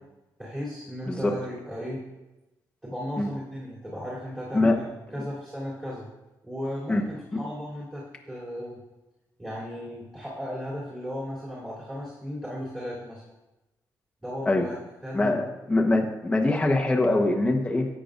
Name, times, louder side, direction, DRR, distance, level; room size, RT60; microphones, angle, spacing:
voice 1, 0.4-2.0 2.8-4.8 5.1-6.1 6.4-8.8 9.4-13.2 14.2-15.4, equal, 10° right, -8 dB, 3.4 m, -35 dB
voice 2, 15.1-17.9, left 2 dB, 15° left, 0 dB, 1.2 m, -23 dB
13.5 x 8.6 x 2.6 m, 1.0 s
cardioid pair, 115°, 8 cm